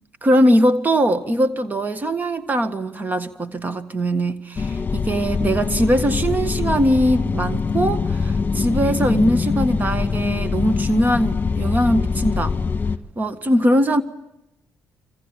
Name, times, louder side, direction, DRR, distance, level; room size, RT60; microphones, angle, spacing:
voice 1, 0.2-12.6 13.2-14.0, equal, 30° right, 1.6 m, -21 dB
sound 1, 4.6-13.0, left 5 dB, 30° left, 1.5 m, -23 dB
26.5 x 25.0 x 9.0 m
cardioid pair, 80°, 6 cm